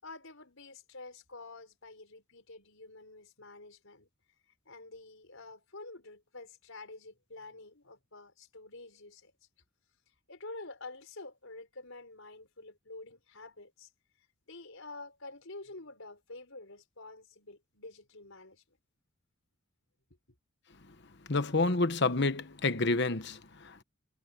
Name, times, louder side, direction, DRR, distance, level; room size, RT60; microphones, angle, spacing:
voice 1, 0.0-4.1 4.6-9.3 10.3-13.9 14.5-18.6, left 2 dB, 70° left, 4.9 m, -48 dB
voice 2, 21.3-23.8, left 3 dB, 55° left, 1.2 m, -29 dB
head